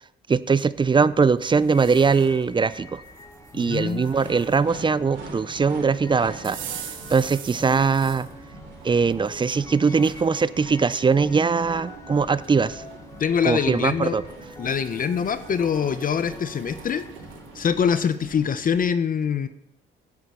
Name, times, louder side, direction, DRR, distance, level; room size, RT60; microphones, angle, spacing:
voice 1, 0.3-3.0 3.5-6.6 6.9-8.3 8.8-12.8 13.4-14.2, right 5 dB, 25° right, 17 dB, 0.5 m, -21 dB
sound 1, 0.7-18.8, right 3 dB, 65° right, 3.5 m, -44 dB
sound 2, 1.4-2.5 3.0-4.6 6.4-8.3 8.9-10.3 10.9-11.0 12.1-12.2 12.4-13.0 14.3-18.3, right 9 dB, 80° right, 1.3 m, -44 dB
sound 3, 1.7-17.8, left 2 dB, 15° left, 1.4 m, -45 dB
voice 2, 3.5-4.1 13.2-14.2 14.6-17.0 17.5-19.5, left 7 dB, 45° left, 12 dB, 0.7 m, -24 dB
9.9 x 8.1 x 6.8 m, 0.82 s
cardioid pair, 90°, 20 cm